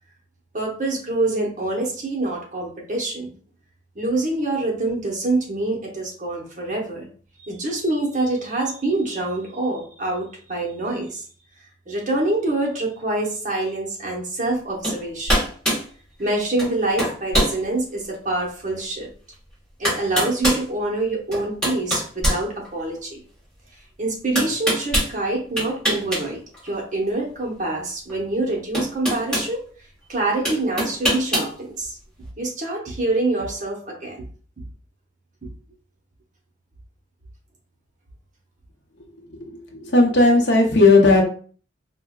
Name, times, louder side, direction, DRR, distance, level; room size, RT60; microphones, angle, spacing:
voice 1, 0.5-3.3 3.9-7.1 7.4-11.2 11.9-15.5 16.2-19.1 19.8-23.2 24.0-29.6 30.1-32.0 32.4-34.2, right 2 dB, 40° right, -1 dB, 0.9 m, -25 dB
sound 1, 14.8-15.0 15.3-15.9 16.6-16.7 17.0-17.6 18.1-18.2 19.3-19.4 19.8-20.6 21.3-23.0 24.3-25.1 25.6-26.2 26.5-26.7 28.1-28.2 28.7-29.5 30.4-31.5, equal, 5° left, 1.5 m, -23 dB
voice 2, 39.8-41.2, left 2 dB, 65° left, 1 dB, 0.7 m, -15 dB
4.5 x 2.1 x 2.3 m, 0.43 s
head